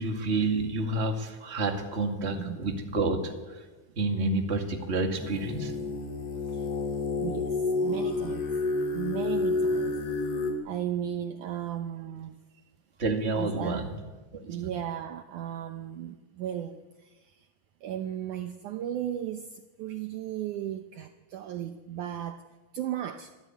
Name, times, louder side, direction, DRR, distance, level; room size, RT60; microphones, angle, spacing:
voice 1, 0.0-3.6 3.9-5.7 13.0-13.9 14.3-14.6, right 2 dB, 30° right, 3 dB, 1.3 m, -29 dB
sound 1, 5.2-10.5, left 3 dB, 75° left, 4.9 m, -29 dB
voice 2, 7.2-8.5 8.9-10.0 10.6-12.4 13.3-13.8 14.4-17.4 17.8-22.4 22.7-23.3, right 11 dB, 90° right, 7 dB, 1.7 m, -35 dB
25.0 x 14.0 x 9.3 m, 1.2 s
omnidirectional pair, 4.7 m